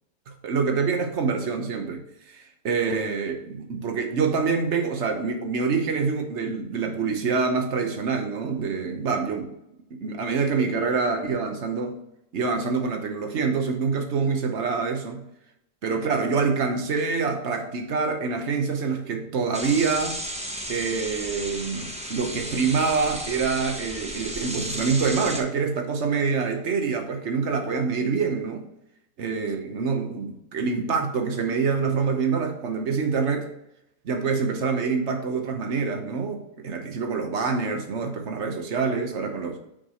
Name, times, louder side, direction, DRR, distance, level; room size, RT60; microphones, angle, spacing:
voice 1, 0.3-9.5 9.9-12.0 12.3-15.2 15.8-20.2 20.7-28.7 29.2-33.5 34.0-39.6, right 5 dB, 50° right, 5 dB, 1.1 m, -26 dB
sound 1, 19.5-25.4, right 1 dB, 10° right, 0.4 m, -34 dB
6.2 x 4.6 x 5.0 m, 0.84 s
omnidirectional pair, 1.8 m